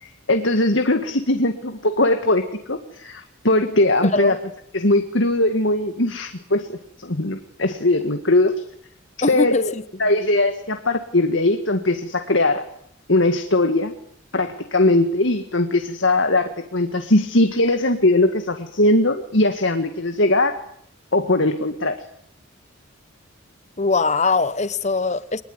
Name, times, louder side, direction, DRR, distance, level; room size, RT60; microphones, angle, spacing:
voice 1, 0.0-4.4 4.7-6.7 7.0-8.6 9.2-9.7 10.0-12.7 13.1-13.9 14.3-20.6 21.1-22.0, left 2 dB, 60° left, 2.0 m, -20 dB
voice 2, 4.0-4.4 9.2-9.8 23.8-25.4, left 3 dB, 35° left, 1.0 m, -21 dB
24.5 x 20.0 x 9.8 m
head